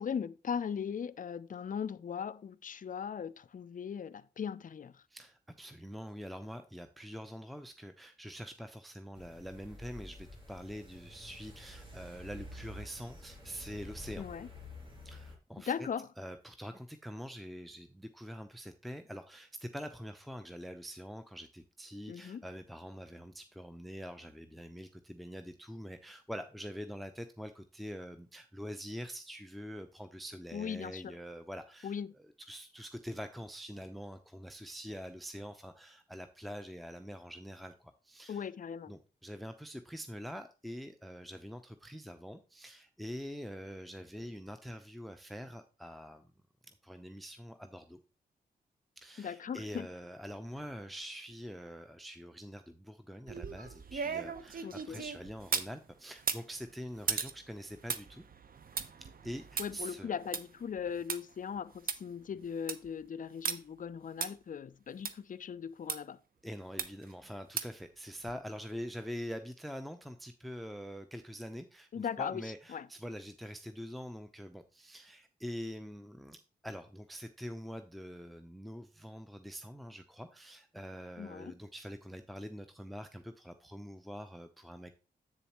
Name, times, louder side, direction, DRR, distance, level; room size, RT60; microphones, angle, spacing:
voice 1, 0.0-5.0 14.2-14.5 15.6-16.1 22.1-22.4 30.5-31.1 31.8-32.2 38.3-38.9 49.2-49.9 54.6-55.0 59.6-66.2 71.9-72.9 81.2-81.5, left 7 dB, 45° left, 0.5 m, -39 dB
voice 2, 5.1-14.2 15.0-15.9 16.2-38.5 38.9-46.3 46.7-48.0 49.0-58.2 59.0-60.1 66.4-76.4 76.6-84.9, equal, ahead, 0.7 m, -45 dB
sound 1, 9.1-15.4, left 1 dB, 30° right, 2.8 m, -49 dB
sound 2, 53.3-55.7 56.2-61.2 61.6-61.7 61.9-62.0 62.4-62.9 63.4-63.6 64.2-64.3 65.0-65.1 65.9-66.0 66.8-67.1 67.6-67.8 68.3-68.4, right 6 dB, 55° right, 0.8 m, -37 dB
8.0 x 6.9 x 3.0 m
supercardioid pair, 40°, 18 cm